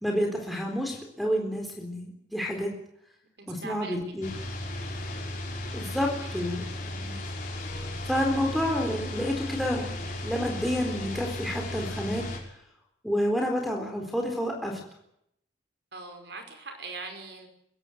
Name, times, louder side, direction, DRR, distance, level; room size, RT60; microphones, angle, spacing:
voice 1, 0.0-2.7 3.5-4.3 5.7-7.2 8.0-9.9 10.2-12.3 13.0-14.8, equal, ahead, 3 dB, 4.0 m, -29 dB
voice 2, 3.4-4.0 4.8-4.9 6.2-6.3 15.9-17.5, right 3 dB, 60° right, 6 dB, 5.4 m, -41 dB
sound 1, 4.2-12.4, left 1 dB, 45° left, 6.0 m, -35 dB
23.0 x 16.0 x 9.4 m, 0.75 s
head